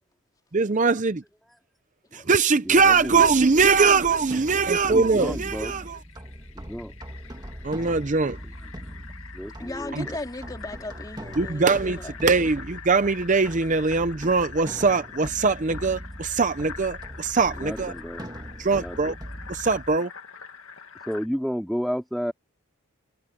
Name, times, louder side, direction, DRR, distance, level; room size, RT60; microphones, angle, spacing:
voice 1, 0.5-1.2 2.1-6.0 7.6-8.4 9.9-10.1 11.4-17.9 18.6-19.1 19.5-20.1, right 4 dB, 35° right, 0.6 m, -22 dB
voice 2, 2.6-3.3 4.8-5.9 6.5-6.9 8.8-8.9 9.3-10.2 17.6-18.3 18.7-19.2 21.1-22.3, equal, ahead, 3.4 m, -32 dB
sound 1, 2.7-20.0, equal, 20° right, 2.2 m, -41 dB
Fill (with liquid), 3.2-21.3, left 6 dB, 65° left, 2.2 m, -45 dB
voice 3, 9.6-12.1, left 2 dB, 15° left, 2.9 m, -37 dB
head